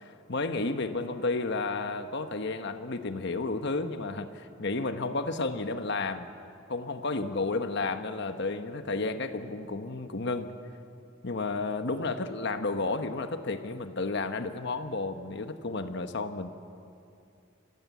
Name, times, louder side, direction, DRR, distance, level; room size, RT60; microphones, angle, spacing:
voice 1, 0.3-6.3 6.7-10.5 11.2-16.5, left 3 dB, 60° left, 8 dB, 1.1 m, -32 dB
28.0 x 15.5 x 8.3 m, 2.6 s
head